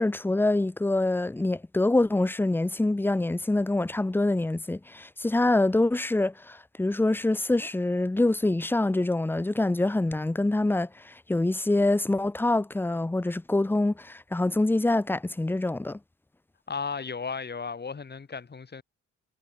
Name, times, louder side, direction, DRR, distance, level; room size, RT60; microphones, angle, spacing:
voice 1, 0.0-16.0, left 2 dB, 5° left, 0.6 m, -25 dB
voice 2, 16.7-18.8, left 5 dB, 35° left, 6.2 m, -34 dB
cardioid pair, 90°, 30 cm